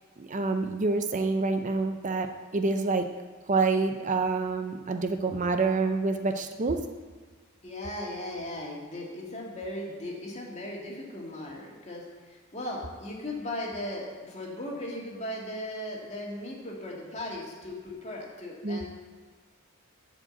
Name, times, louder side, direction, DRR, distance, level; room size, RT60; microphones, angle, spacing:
voice 1, 0.2-2.3 2.5-3.1 3.5-6.8 18.6-18.8, right 3 dB, 35° right, 6 dB, 0.6 m, -27 dB
voice 2, 7.6-12.0 12.3-18.9, left 1 dB, 35° left, -2 dB, 2.3 m, -37 dB
11.5 x 5.2 x 7.8 m, 1.5 s
head